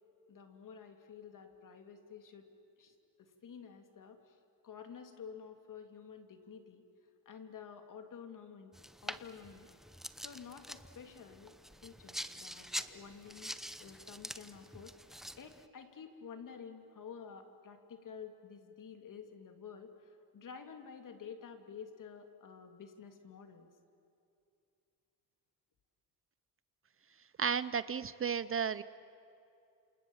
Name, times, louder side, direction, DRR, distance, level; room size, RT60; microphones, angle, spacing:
voice 1, 0.3-2.5 2.8-4.4 4.6-6.8 7.2-8.7 9.0-9.7 10.2-11.5 11.8-14.9 15.3-23.7, left 6 dB, 50° left, 6 dB, 2.9 m, -50 dB
sound 1, 8.7-15.7, equal, ahead, 0.8 m, -46 dB
voice 2, 27.4-28.8, right 7 dB, 35° right, 15 dB, 0.6 m, -33 dB
28.0 x 28.0 x 7.3 m, 2.6 s
cardioid pair, 95°, 39 cm